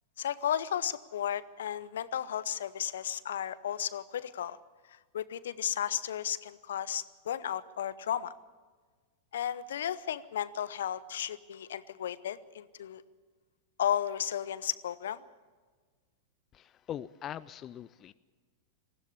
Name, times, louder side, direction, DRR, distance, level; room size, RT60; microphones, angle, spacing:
voice 1, 0.2-4.6 5.1-8.3 9.3-13.0 13.8-15.2, left 10 dB, 65° left, 17 dB, 0.7 m, -34 dB
voice 2, 16.5-18.1, left 10 dB, 30° left, 16 dB, 0.5 m, -42 dB
19.5 x 15.5 x 8.6 m, 1.5 s
figure-of-eight pair, 95°, 0 cm